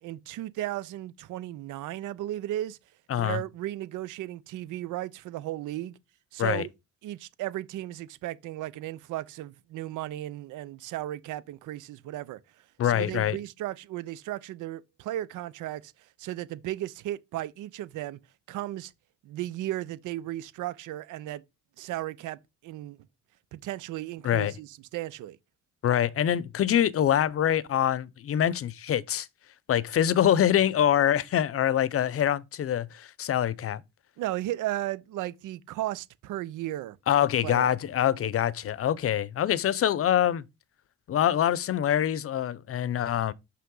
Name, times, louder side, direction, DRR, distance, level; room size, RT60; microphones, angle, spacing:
voice 1, 0.0-2.8 3.2-5.9 6.3-6.7 7.0-12.4 12.8-18.2 18.5-18.9 19.2-21.4 21.8-23.1 23.5-25.4 34.2-37.0 37.4-37.7, right 14 dB, 85° right, 0.6 m, -35 dB
voice 2, 3.1-3.4 6.4-6.6 12.8-13.4 24.2-24.5 25.8-29.3 29.7-33.8 37.1-40.4 41.1-43.3, left 10 dB, 50° left, 0.7 m, -25 dB
6.2 x 5.7 x 3.8 m
cardioid pair, 90°, 30 cm